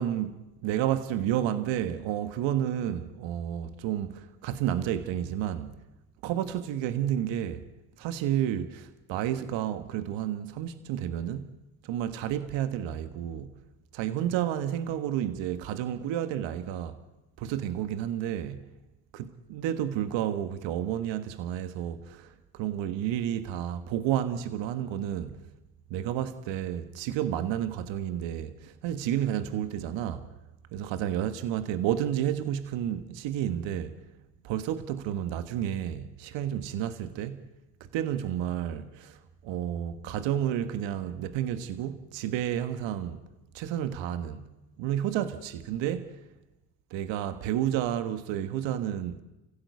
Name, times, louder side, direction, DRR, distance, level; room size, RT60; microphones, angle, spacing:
voice 1, 0.0-5.7 6.2-7.7 8.0-11.5 11.8-13.5 13.9-17.0 17.4-18.7 19.1-25.4 25.9-30.3 30.7-34.0 34.4-37.5 37.9-43.2 43.5-44.5 44.8-46.2 46.9-49.2, right 10 dB, 70° right, 1.6 m, -31 dB
30.0 x 16.0 x 8.3 m
hypercardioid pair, 60°, 46 cm